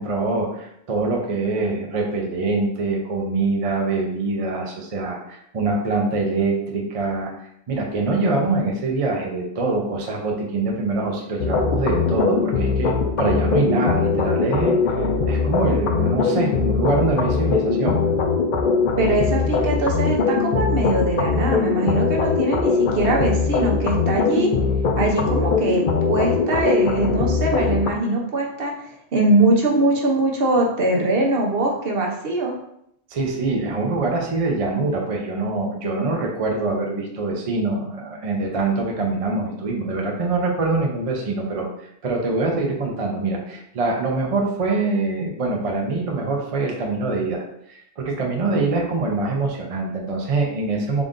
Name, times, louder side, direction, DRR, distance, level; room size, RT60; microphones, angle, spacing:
voice 1, 0.0-7.3 7.7-18.0 33.1-41.7 42.0-51.0, right 3 dB, 40° right, 0 dB, 0.5 m, -24 dB
sound 1, 11.4-27.9, left 5 dB, 60° left, 0.6 m, -21 dB
voice 2, 19.0-24.5 25.0-32.5, right 2 dB, 60° right, 0 dB, 0.9 m, -22 dB
3.9 x 2.5 x 3.6 m, 0.74 s
omnidirectional pair, 1.2 m